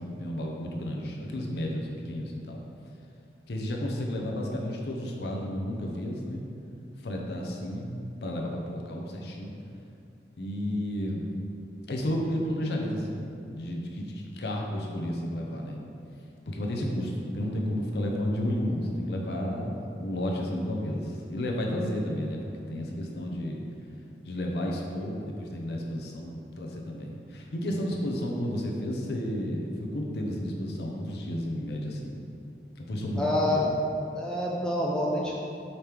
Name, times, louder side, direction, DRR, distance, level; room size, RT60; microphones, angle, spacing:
voice 1, 0.0-2.6 3.5-6.5 7.0-9.5 10.4-11.3 11.9-15.8 16.5-23.6 24.3-32.2 32.8-33.7, left 1 dB, 65° left, 0 dB, 0.5 m, -32 dB
voice 2, 33.2-33.7 34.1-35.3, left 1 dB, 5° left, -4 dB, 0.3 m, -27 dB
5.2 x 2.9 x 3.3 m, 2.6 s
head